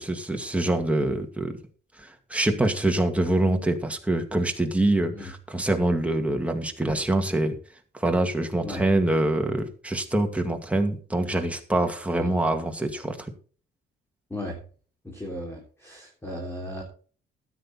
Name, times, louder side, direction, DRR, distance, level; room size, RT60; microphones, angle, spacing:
voice 1, 0.0-1.6 2.0-7.5 7.9-13.3, right 1 dB, 5° right, 3 dB, 2.2 m, -25 dB
voice 2, 15.0-16.8, left 1 dB, 10° left, -1 dB, 3.7 m, -35 dB
13.0 x 9.4 x 4.3 m, 0.41 s
cardioid pair, 90°, 20 cm